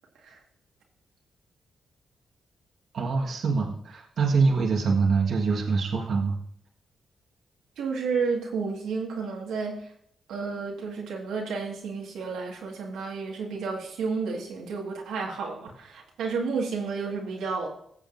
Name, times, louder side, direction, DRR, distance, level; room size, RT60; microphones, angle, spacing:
voice 1, 2.9-6.4, right 4 dB, 70° right, -1 dB, 1.6 m, -24 dB
voice 2, 7.8-9.8 10.3-17.7, right 5 dB, 85° right, -1 dB, 1.8 m, -31 dB
17.0 x 7.0 x 2.6 m, 0.68 s
supercardioid pair, 55°, 0 cm